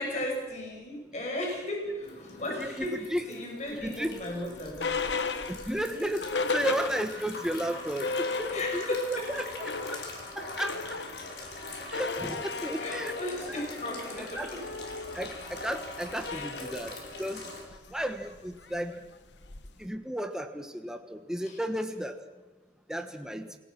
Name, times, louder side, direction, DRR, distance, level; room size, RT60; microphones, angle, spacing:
voice 1, 0.0-5.0 5.7-6.1 6.6-6.8 8.5-9.5 12.8-14.6 16.3-16.5 18.7-18.9 21.4-21.6, left 1 dB, 40° left, 0 dB, 5.9 m, -36 dB
sound 1, 2.0-17.6, left 3 dB, 70° left, 5.5 m, -43 dB
voice 2, 2.6-3.4 3.7-4.1 5.5-6.3 6.5-10.0 10.4-11.0 11.9-13.6 14.2-14.5 15.1-15.4 15.6-16.9 17.2-17.4 17.9-18.9 19.8-22.2 22.9-23.5, equal, 5° right, 6 dB, 1.4 m, -34 dB
sound 2, 3.8-7.4 7.7-7.8 8.0-9.1 9.4-19.9, left 4 dB, 90° left, 1.3 m, -36 dB
28.0 x 19.0 x 6.2 m, 1.2 s
head